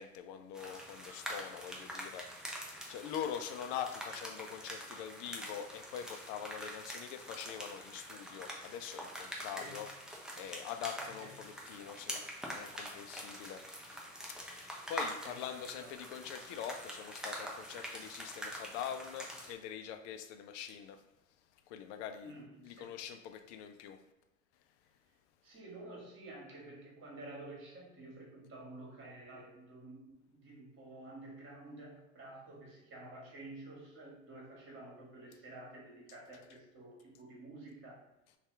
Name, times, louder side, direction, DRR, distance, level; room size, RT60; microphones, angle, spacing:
voice 1, 0.0-2.3 2.9-9.9 10.1-14.0 14.3-21.0 21.7-22.3 22.6-24.0, left 9 dB, 60° left, 8 dB, 0.5 m, -44 dB
sound 1, 0.5-19.5, equal, ahead, 0.5 m, -45 dB
voice 2, 9.4-9.9 11.0-11.3 15.2-15.4 15.8-16.0 22.2-23.0 25.4-38.0, right 2 dB, 30° right, -3 dB, 1.4 m, -51 dB
2.7 x 2.4 x 3.3 m, 0.93 s
hypercardioid pair, 80°, 40 cm